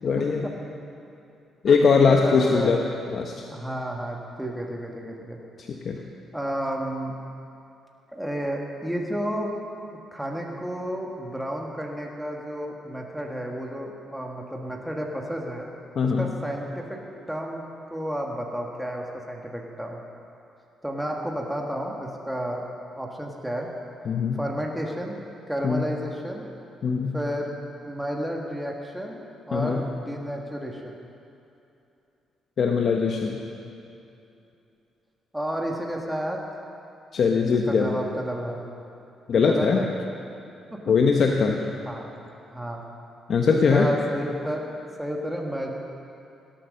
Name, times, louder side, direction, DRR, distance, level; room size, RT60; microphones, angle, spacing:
voice 1, 0.0-0.5 1.6-2.8 3.1-3.3 5.6-6.0 16.0-16.3 24.0-24.4 25.6-25.8 26.8-27.2 29.5-29.9 32.6-33.4 37.1-37.9 39.3-39.8 40.9-41.6 43.3-43.9, left 5 dB, 55° left, 1 dB, 1.0 m, -21 dB
voice 2, 1.7-2.7 3.4-5.4 6.3-7.1 8.1-9.5 10.1-15.7 16.0-17.0 17.3-17.6 17.9-20.0 20.8-22.7 23.0-23.7 24.3-25.2 25.5-26.4 27.1-27.5 27.8-29.2 29.5-31.0 35.3-36.4 37.7-38.6 39.3-39.9 40.7-40.8 41.9-42.1 42.5-42.8 43.7-45.7, equal, 5° right, 0 dB, 1.6 m, -31 dB
17.0 x 8.9 x 6.5 m, 2.7 s
cardioid pair, 90°, 0 cm